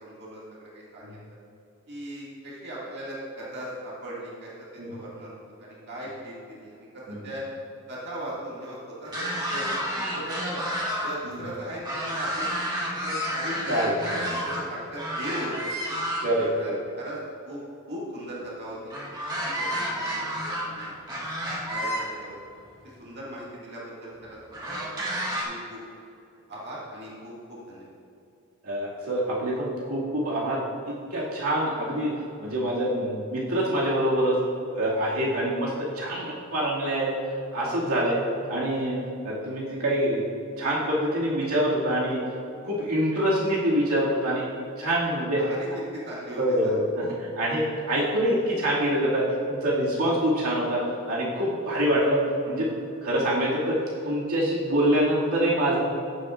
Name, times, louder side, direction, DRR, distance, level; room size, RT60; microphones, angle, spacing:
voice 1, 0.0-1.4 1.9-7.4 7.9-9.6 9.9-10.6 11.0-12.5 13.0-14.1 14.3-15.6 16.5-16.7 17.0-17.2 17.4-17.6 17.9-18.8 19.4-20.9 21.7-22.4 23.0-24.4 24.6-25.0 25.4-25.8 26.5-27.9 45.1-45.7 45.9-46.8, right 1 dB, 50° right, -6 dB, 2.1 m, -38 dB
sound 1, 9.1-11.1 11.4-14.6 15.0-16.5 18.9-22.0 23.0-23.1 24.5-25.4, equal, 20° right, 1.6 m, -30 dB
voice 2, 13.7-14.6 16.2-16.8 28.6-30.6 30.9-32.1 32.4-34.4 34.7-37.2 37.5-38.2 38.5-39.0 39.2-40.2 40.6-42.2 42.6-44.5 44.8-45.4 46.4-47.1 47.4-50.8 51.1-52.7 53.0-53.8 54.0-55.8, right 1 dB, 80° right, -6 dB, 2.2 m, -25 dB
15.0 x 7.7 x 2.5 m, 2.7 s
head